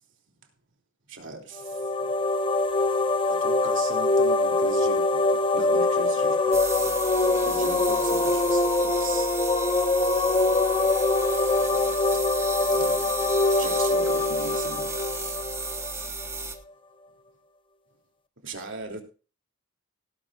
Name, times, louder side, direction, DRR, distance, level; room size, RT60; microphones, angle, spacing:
voice 1, 1.1-1.9 3.3-6.9 7.4-9.3 12.7-13.0 13.6-14.9 18.4-19.0, right 3 dB, 65° right, 3.1 m, -39 dB
sound 1, 1.6-16.3, left 2 dB, 25° left, 0.8 m, -24 dB
sound 2, 6.5-16.6, right 4 dB, 15° right, 1.5 m, -34 dB
17.5 x 11.5 x 2.5 m
head